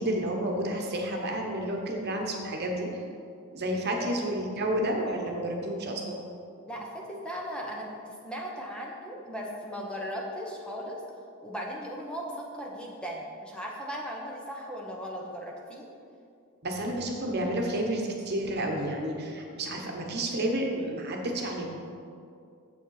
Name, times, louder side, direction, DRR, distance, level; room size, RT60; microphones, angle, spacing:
voice 1, 0.0-3.0 3.5-6.2 16.6-21.9, right 1 dB, 50° right, 1 dB, 1.2 m, -30 dB
voice 2, 6.7-11.0 11.4-15.9, equal, 5° left, -2 dB, 0.9 m, -37 dB
8.7 x 7.4 x 4.8 m, 2.4 s
head